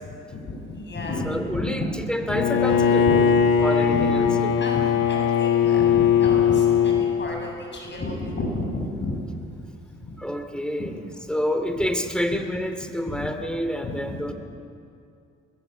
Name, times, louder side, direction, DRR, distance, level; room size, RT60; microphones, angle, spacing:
voice 1, 0.3-1.8 2.3-2.4 3.1-9.2 10.0-10.1 10.8-10.9 13.1-13.3 13.8-14.3, left 2 dB, 35° left, 0 dB, 7.8 m, -32 dB
voice 2, 1.3-3.1 3.6-4.5 10.2-11.0 11.3-14.3, equal, 5° left, 7 dB, 2.7 m, -28 dB
Bowed string instrument, 2.3-7.1, left 8 dB, 85° left, 2.0 m, -19 dB
23.5 x 20.5 x 8.3 m, 2.5 s
cardioid pair, 90°, 30 cm